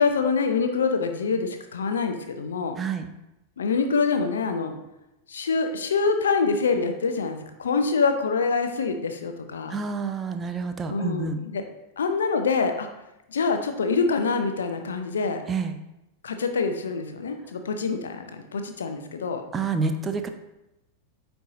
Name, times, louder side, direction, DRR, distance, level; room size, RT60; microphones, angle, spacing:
voice 1, 0.0-2.8 3.6-4.8 5.3-9.7 10.9-11.6 12.0-12.9 13.3-15.4 16.2-19.4, left 4 dB, 65° left, 6 dB, 0.7 m, -25 dB
voice 2, 2.8-3.1 9.7-11.4 15.5-15.8 19.5-20.3, right 4 dB, 20° right, 7 dB, 0.5 m, -28 dB
9.2 x 4.6 x 2.7 m, 0.92 s
figure-of-eight pair, 90°, 0 cm